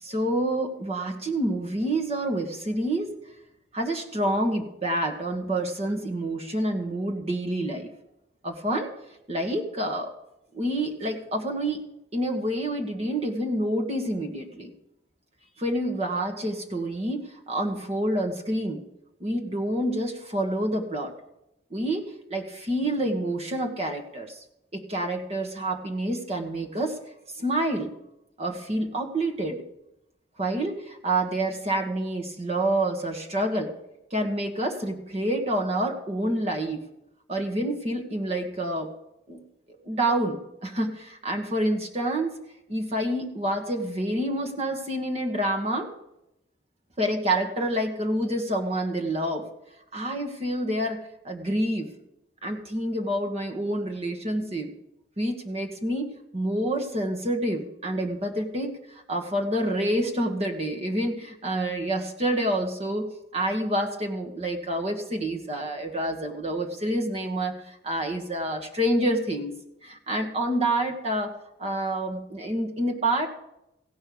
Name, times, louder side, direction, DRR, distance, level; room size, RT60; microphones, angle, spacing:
voice 1, 0.0-3.1 3.7-7.9 8.4-8.9 9.3-10.1 10.5-11.8 12.1-14.7 15.6-18.8 19.2-21.1 21.7-24.4 24.7-27.0 27.3-27.9 28.4-29.6 30.4-33.7 34.1-36.8 37.3-38.9 39.3-39.4 39.8-42.4 42.7-45.9 47.0-49.4 49.9-51.0 51.2-51.9 52.4-54.7 55.2-56.1 56.3-69.5 69.8-73.3, right 1 dB, 35° right, 4 dB, 1.5 m, -28 dB
16.5 x 5.5 x 8.5 m, 0.83 s
head